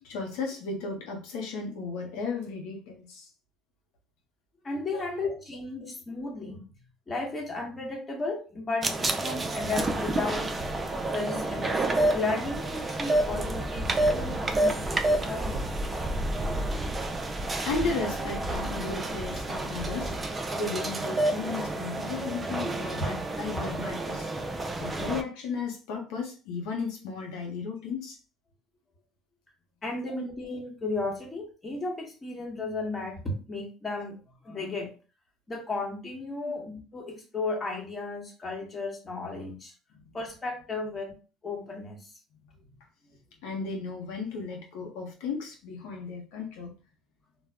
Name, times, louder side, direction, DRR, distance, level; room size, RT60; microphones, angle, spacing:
voice 1, 0.0-3.3 4.9-5.0 17.6-20.1 20.5-24.3 24.8-28.2 30.1-30.2 39.9-40.0 43.4-46.7, left 4 dB, 85° left, 0.6 m, -35 dB
voice 2, 4.6-6.6 7.1-10.4 11.1-15.9 23.0-23.1 29.8-34.9 35.5-39.7 40.1-41.2 41.4-42.0, left 3 dB, 25° left, 1.1 m, -34 dB
sound 1, 8.8-25.2, right 2 dB, 25° right, 0.4 m, -29 dB
2.2 x 2.0 x 3.4 m
supercardioid pair, 100°, 0 cm